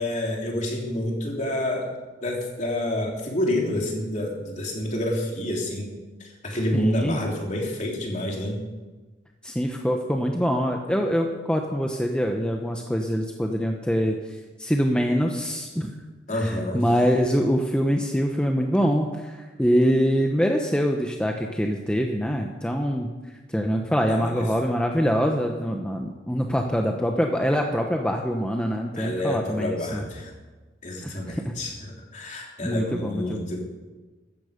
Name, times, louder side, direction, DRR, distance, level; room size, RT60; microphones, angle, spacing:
voice 1, 0.0-1.9 2.2-5.9 6.2-8.6 16.3-16.8 24.1-24.4 29.0-30.3 30.8-33.6, left 1 dB, 40° left, -1 dB, 3.3 m, -28 dB
voice 2, 6.7-7.2 9.4-14.1 14.6-16.0 16.3-23.1 23.5-30.0 31.0-31.4 32.6-33.5, equal, 5° left, 2 dB, 0.9 m, -24 dB
15.5 x 13.0 x 5.2 m, 1.3 s
head